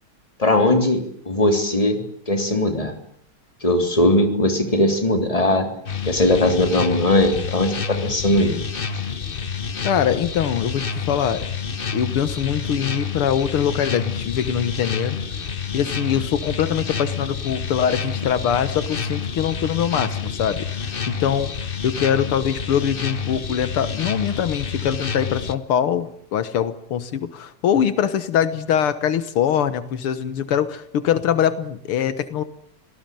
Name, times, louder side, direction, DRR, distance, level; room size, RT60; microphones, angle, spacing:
voice 1, 0.4-2.0 2.3-2.9 3.6-5.7 6.1-8.5, left 1 dB, 15° left, 6 dB, 3.4 m, -19 dB
sound 1, 5.9-25.5, left 5 dB, 35° left, 0.9 m, -29 dB
voice 2, 9.8-11.5 11.9-15.2 15.7-32.4, left 9 dB, 80° left, 13 dB, 2.2 m, -23 dB
26.0 x 18.0 x 9.2 m, 0.66 s
omnidirectional pair, 2.4 m